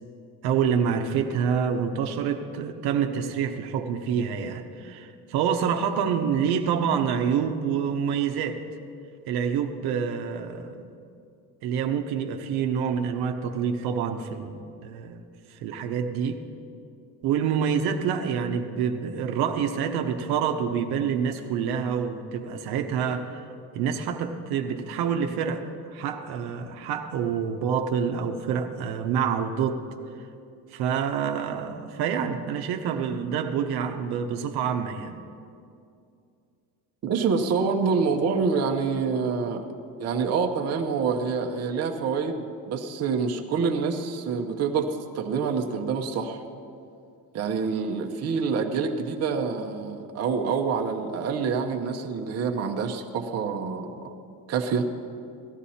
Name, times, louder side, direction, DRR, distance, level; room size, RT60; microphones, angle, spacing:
voice 1, 0.4-8.6 9.3-10.9 11.6-15.2 15.5-16.4 17.2-23.4 23.7-25.6 25.9-29.8 30.7-35.2, right 7 dB, 75° right, 5 dB, 1.0 m, -27 dB
voice 2, 37.0-39.6 40.0-44.9 45.1-46.4 47.3-54.1 54.5-54.8, right 5 dB, 40° right, 3 dB, 0.9 m, -26 dB
17.5 x 13.0 x 4.3 m, 2.5 s
cardioid pair, 150°, 38 cm